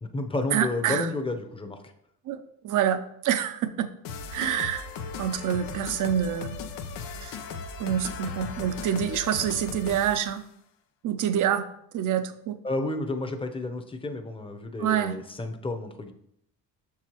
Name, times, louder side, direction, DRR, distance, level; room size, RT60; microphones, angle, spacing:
voice 1, 0.0-1.9 12.6-16.1, left 2 dB, 15° left, 6 dB, 0.8 m, -31 dB
voice 2, 0.5-1.1 2.3-3.9 4.3-4.9 5.2-6.5 7.2-7.4 7.8-10.4 11.0-11.7 11.9-12.6 14.8-15.2, right 9 dB, 50° right, 10 dB, 0.7 m, -27 dB
sound 1, 4.0-10.3, left 5 dB, 85° left, 0.7 m, -37 dB
6.5 x 4.8 x 3.0 m, 0.74 s
supercardioid pair, 75°, 38 cm